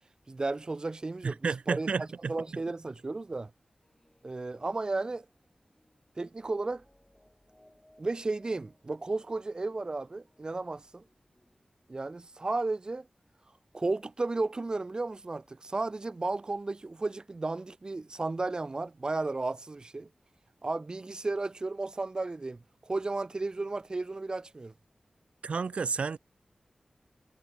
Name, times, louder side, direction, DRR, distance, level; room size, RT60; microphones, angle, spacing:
voice 1, 0.3-3.5 4.2-5.2 6.2-6.8 8.0-11.0 11.9-13.1 13.7-20.1 20.6-24.7, right 3 dB, 40° right, 0.8 m, -34 dB
voice 2, 1.2-2.3 25.4-26.2, right 5 dB, 80° right, 0.5 m, -31 dB
sound 1, 3.8-11.6, left 1 dB, 10° left, 3.8 m, -66 dB
wide cardioid pair, 65°, 2 cm